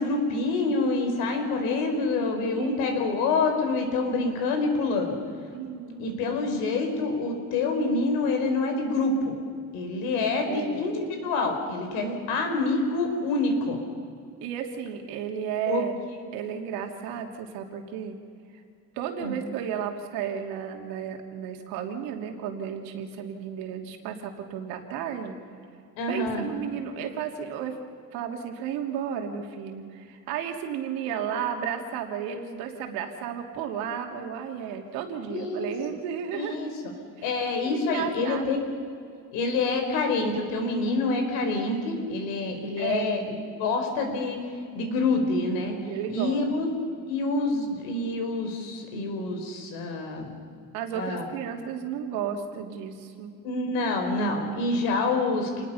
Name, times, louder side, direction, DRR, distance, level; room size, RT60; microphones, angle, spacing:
voice 1, 0.0-5.2 6.0-9.3 9.7-13.8 15.7-15.8 19.2-19.4 26.0-26.5 35.3-35.7 36.3-36.7 37.2-38.6 39.3-43.2 43.6-44.4 44.7-45.7 46.1-46.7 47.1-50.3 50.9-51.3 53.4-55.6, left 3 dB, 85° left, 4 dB, 4.7 m, -27 dB
voice 2, 5.5-6.1 10.5-11.0 14.4-15.9 16.3-18.1 18.9-25.4 26.1-27.8 28.1-36.6 37.2-37.3 37.6-38.4 42.8-43.1 45.8-46.4 50.7-53.3, right 8 dB, 85° right, 3 dB, 2.9 m, -33 dB
28.0 x 20.0 x 5.7 m, 2.4 s
cardioid pair, 150°, 35 cm